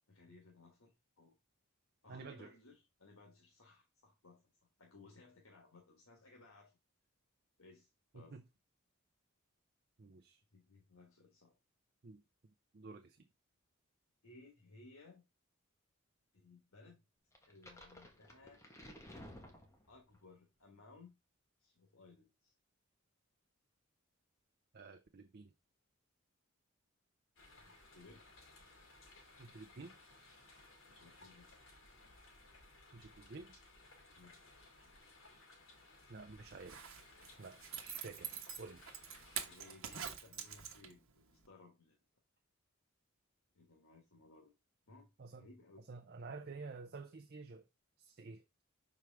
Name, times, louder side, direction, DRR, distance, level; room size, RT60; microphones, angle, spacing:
voice 1, 0.1-1.3 2.0-4.5 4.8-6.8 7.6-8.4 10.5-11.5 14.2-15.2 16.3-17.0 17.5-18.6 19.9-21.2 21.6-22.5 27.6-28.2 30.9-31.5 34.1-34.9 39.4-42.0 43.5-44.5 44.9-45.8, left 3 dB, 85° left, 1.5 m, -61 dB
voice 2, 2.1-2.5 8.1-8.4 10.0-10.4 12.0-12.2 12.7-13.2 24.7-25.5 29.4-30.0 32.9-33.6 36.1-36.9 37.4-38.8 45.2-45.5 45.9-47.6 48.0-48.4, right 4 dB, 50° right, 0.6 m, -51 dB
sound 1, 17.4-20.2, left 1 dB, 15° left, 1.3 m, -55 dB
sound 2, 27.4-39.6, left 2 dB, 70° left, 2.3 m, -61 dB
Zipper (clothing), 36.5-41.1 41.5-41.6, right 8 dB, 70° right, 1.2 m, -46 dB
6.3 x 4.7 x 3.4 m
head